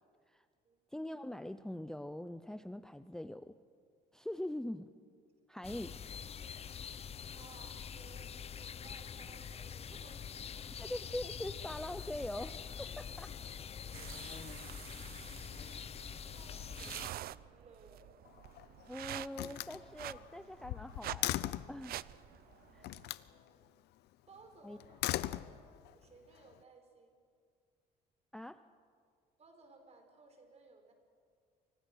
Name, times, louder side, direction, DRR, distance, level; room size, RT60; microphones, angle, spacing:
voice 1, 0.9-3.6 4.1-4.9 5.5-5.9 10.8-13.3 18.9-22.1 22.7-22.9 24.6-24.8 28.3-28.6, left 1 dB, 5° left, 11 dB, 0.6 m, -43 dB
sound 1, 5.6-17.1, left 7 dB, 35° left, 0.9 m, -45 dB
voice 2, 7.3-10.3 13.1-13.2 14.0-14.4 16.3-18.2 23.1-23.8 24.3-25.5 25.8-27.2 29.4-30.9, right 3 dB, 40° right, 5 dB, 5.2 m, -60 dB
sound 2, 13.9-23.1, right 13 dB, 65° right, 0.6 m, -48 dB
Slam, 18.3-18.8 19.3-21.8 22.8-23.3 24.8-25.9, left 15 dB, 80° left, 0.8 m, -38 dB
28.5 x 24.5 x 6.3 m, 2.1 s
cardioid pair, 110°, 17 cm